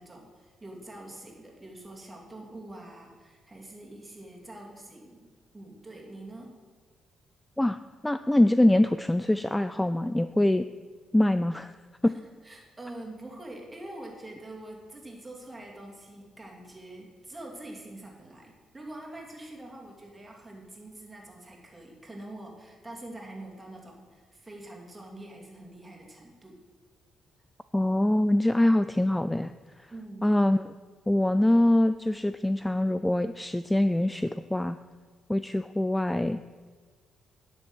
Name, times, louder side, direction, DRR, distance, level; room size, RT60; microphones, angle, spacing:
voice 1, 0.0-6.6 12.0-26.6 29.9-30.3, right 1 dB, 15° right, -1 dB, 2.7 m, -45 dB
voice 2, 7.6-10.7 11.1-11.7 12.0-12.1 27.7-29.5 29.8-29.9 30.2-30.6 31.1-34.8 35.3-36.4, left 1 dB, 10° left, 12 dB, 0.3 m, -24 dB
10.5 x 7.2 x 6.2 m, 1.5 s
cardioid pair, 90°, 0 cm